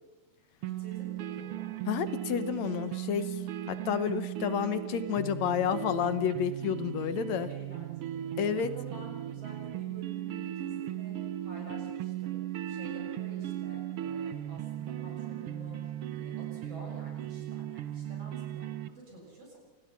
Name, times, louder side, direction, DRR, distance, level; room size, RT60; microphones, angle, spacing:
voice 1, 0.6-1.7 7.2-11.1 11.4-12.4 12.7-19.6, right 1 dB, 45° right, -1 dB, 7.7 m, -49 dB
sound 1, 0.6-18.9, right 12 dB, 80° right, 1.3 m, -37 dB
voice 2, 1.9-3.4 3.7-7.5 8.4-8.7, left 8 dB, 65° left, 12 dB, 2.0 m, -30 dB
28.5 x 20.5 x 5.9 m, 1.1 s
omnidirectional pair, 3.8 m